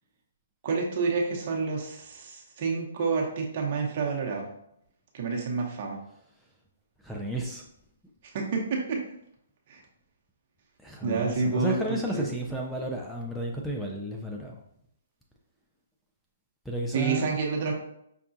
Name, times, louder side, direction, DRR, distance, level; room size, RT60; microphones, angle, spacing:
voice 1, 0.6-4.4 5.1-6.0 8.3-9.0 9.7-9.8 11.0-12.3 16.9-17.7, right 4 dB, 45° right, -1 dB, 0.8 m, -29 dB
voice 2, 7.0-7.7 10.8-14.6 16.7-17.4, right 1 dB, ahead, -1 dB, 0.4 m, -32 dB
5.5 x 2.3 x 2.6 m, 0.75 s
hypercardioid pair, 140°, 0 cm